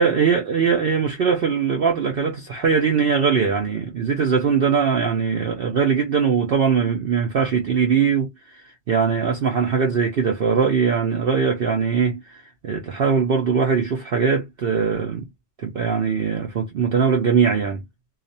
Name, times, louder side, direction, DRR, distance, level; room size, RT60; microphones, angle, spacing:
voice 1, 0.0-15.3 15.6-17.8, right 6 dB, 65° right, 0.5 m, -21 dB
2.5 x 2.4 x 2.6 m
omnidirectional pair, 1.6 m